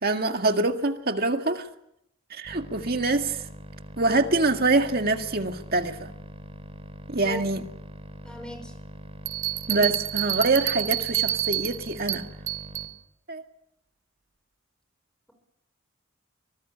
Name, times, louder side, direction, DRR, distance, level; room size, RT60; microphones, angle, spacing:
voice 1, 0.0-1.7 2.3-3.4 4.0-6.1 7.1-7.7 9.7-12.3 13.3-13.4, right 2 dB, 50° right, 1.9 m, -25 dB
sound 1, 2.4-12.9, equal, 30° right, 3.5 m, -43 dB
voice 2, 8.2-8.7 9.7-9.9, equal, 5° left, 5.6 m, -38 dB
sound 2, 9.3-12.9, right 16 dB, 70° right, 0.8 m, -28 dB
24.5 x 20.0 x 8.4 m
head